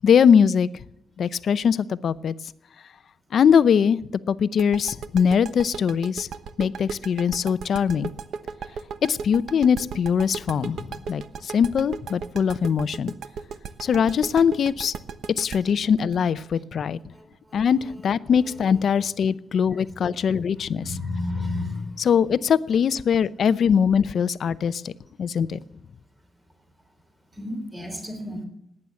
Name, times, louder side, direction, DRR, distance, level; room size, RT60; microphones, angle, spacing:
voice 1, 0.0-0.7 1.2-2.3 3.3-4.0 4.3-6.3 6.6-8.1 9.0-13.1 13.8-14.9 15.4-17.0 17.5-21.0 22.0-24.9 25.2-25.6, left 7 dB, 65° left, 16 dB, 0.6 m, -21 dB
sound 1, 4.6-17.3, right 6 dB, 80° right, 0.9 m, -36 dB
voice 2, 20.8-22.0 27.3-28.4, left 2 dB, 15° right, 4 dB, 3.5 m, -31 dB
18.0 x 9.8 x 7.1 m, 0.78 s
wide cardioid pair, 140°, 0 cm